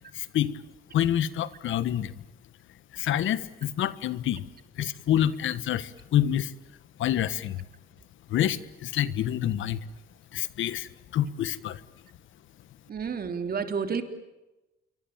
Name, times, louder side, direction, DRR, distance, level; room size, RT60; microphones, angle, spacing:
voice 1, 0.1-0.6 0.9-2.1 2.9-4.4 4.8-6.5 7.0-7.6 8.3-9.9 10.3-11.8, left 11 dB, 75° left, 15 dB, 1.4 m, -27 dB
voice 2, 12.9-14.0, right 6 dB, 50° right, 7 dB, 3.4 m, -30 dB
27.5 x 24.0 x 8.9 m, 0.99 s
cardioid pair, 90°, 20 cm